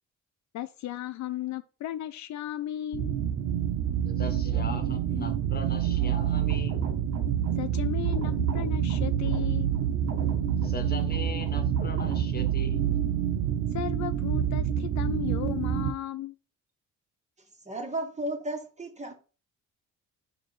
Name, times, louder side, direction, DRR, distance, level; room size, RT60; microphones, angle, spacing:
voice 1, 0.5-3.2 7.6-9.7 13.7-16.4, left 12 dB, 65° left, 0.5 m, -35 dB
Low Pitched Drone Scary, 2.9-15.9, right 9 dB, 85° right, 0.7 m, -27 dB
voice 2, 4.0-6.8 10.6-13.0, left 2 dB, 30° left, 1.4 m, -39 dB
sound 1, 5.6-12.8, right 5 dB, 60° right, 1.6 m, -39 dB
voice 3, 17.6-19.1, right 1 dB, 25° right, 1.5 m, -34 dB
4.7 x 4.5 x 4.5 m
cardioid pair, 90°, 30 cm